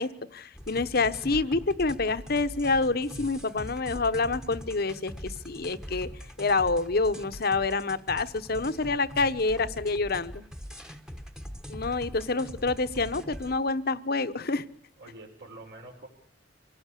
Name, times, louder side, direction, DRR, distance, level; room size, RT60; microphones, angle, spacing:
voice 1, 0.0-6.1 6.4-10.4 11.7-14.6, left 3 dB, 55° left, 11 dB, 1.1 m, -27 dB
sound 1, 0.5-13.6, equal, 5° right, 1.2 m, -42 dB
voice 2, 15.0-16.1, right 2 dB, 65° right, -3 dB, 3.9 m, -47 dB
25.0 x 18.0 x 8.4 m, 0.62 s
head